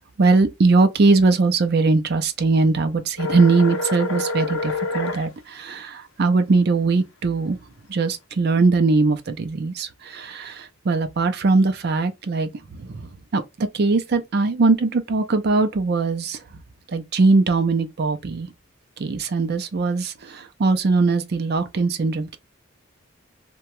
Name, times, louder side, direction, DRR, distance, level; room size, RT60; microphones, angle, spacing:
voice 1, 0.2-7.6 7.9-12.5 12.8-16.4 16.9-18.5 19.0-22.4, right 3 dB, 50° right, 0.5 m, -20 dB
sound 1, 3.2-5.2, left 2 dB, 65° left, 0.6 m, -27 dB
2.8 x 2.2 x 3.0 m
head